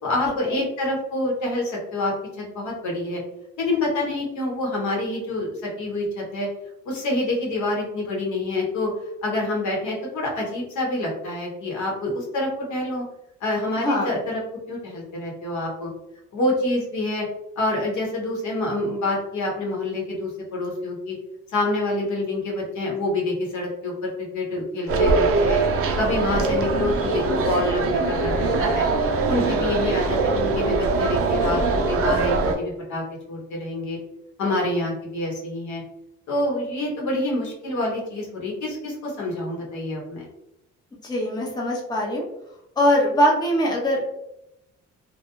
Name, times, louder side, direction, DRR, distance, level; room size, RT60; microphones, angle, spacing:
voice 1, 0.0-3.2 3.6-6.5 6.8-8.9 9.2-13.0 13.4-14.4 14.7-15.9 16.3-17.3 17.6-21.1 21.5-25.6 26.0-28.9 29.3-34.0 34.4-35.8 36.3-40.2, left 2 dB, 70° left, -2 dB, 1.0 m, -27 dB
voice 2, 13.8-14.1 41.0-42.3 42.8-44.0, equal, 15° left, -2 dB, 0.6 m, -22 dB
sound 1, 24.9-32.5, right 3 dB, 50° right, 0.5 m, -22 dB
2.2 x 2.2 x 2.9 m, 0.85 s
cardioid pair, 90°, 30 cm